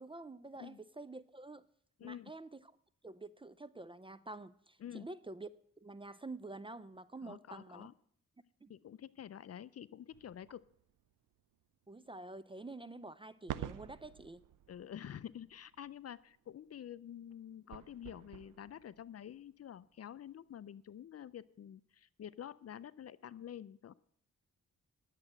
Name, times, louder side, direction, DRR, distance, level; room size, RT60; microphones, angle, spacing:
voice 1, 0.0-1.7 2.0-2.7 3.0-5.5 5.8-7.9 8.6-8.7 11.9-14.5, right 2 dB, 15° right, 15 dB, 0.4 m, -48 dB
voice 2, 2.0-2.3 4.8-5.1 7.2-7.9 8.7-10.7 14.7-23.9, left 10 dB, 50° left, 18 dB, 0.4 m, -48 dB
sound 1, 10.1-11.7 12.2-12.3 12.8-12.9 13.4-20.2 20.6-20.7 21.0-21.1, right 11 dB, 70° right, 0.6 m, -50 dB
10.5 x 7.4 x 7.7 m, 0.65 s
cardioid pair, 90°, 32 cm